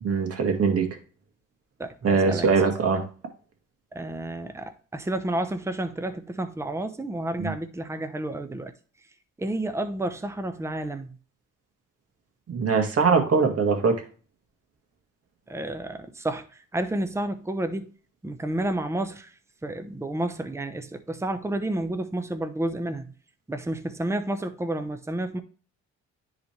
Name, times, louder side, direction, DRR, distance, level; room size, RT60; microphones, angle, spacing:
voice 1, 0.0-0.9 2.0-3.0 7.4-7.5 12.5-14.0, right 5 dB, 50° right, 2.0 m, -22 dB
voice 2, 1.8-2.5 2.9-3.0 3.9-8.7 9.4-11.1 15.5-17.9 18.2-19.3 19.6-23.1 23.5-25.4, right 1 dB, 10° right, 0.8 m, -30 dB
10.0 x 4.1 x 3.2 m
cardioid pair, 90°, 30 cm